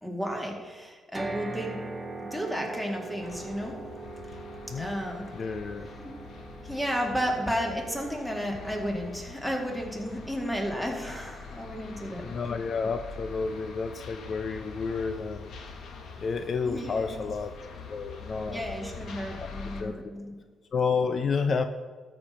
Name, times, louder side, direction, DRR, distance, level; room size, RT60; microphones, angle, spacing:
voice 1, 0.0-1.8 2.2-3.8 4.8-5.3 5.8-6.2 6.6-12.4 16.6-17.2 18.5-20.4, equal, 5° left, 1 dB, 2.3 m, -33 dB
sound 1, 1.1-15.3, right 2 dB, 20° right, 1.1 m, -44 dB
sound 2, 3.2-19.8, left 4 dB, 65° left, 1.4 m, -44 dB
voice 2, 5.3-5.9 12.2-15.5 16.2-17.5 17.9-18.6 19.4-19.5 19.8-19.9 20.7-21.7, left 5 dB, 45° left, 9 dB, 0.6 m, -30 dB
13.0 x 5.3 x 6.8 m, 1.5 s
cardioid pair, 90°, 0 cm